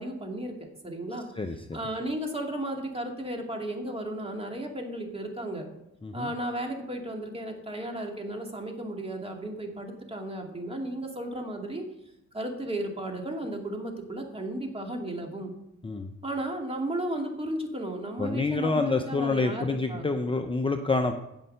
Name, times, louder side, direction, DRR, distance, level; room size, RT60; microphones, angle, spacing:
voice 1, 0.0-1.3 1.7-5.7 6.1-11.8 12.3-15.5 16.2-20.1, right 1 dB, 20° right, 2 dB, 2.5 m, -34 dB
voice 2, 18.2-21.2, left 3 dB, 15° left, 5 dB, 0.7 m, -27 dB
16.0 x 5.6 x 5.6 m, 0.86 s
cardioid pair, 90°, 30 cm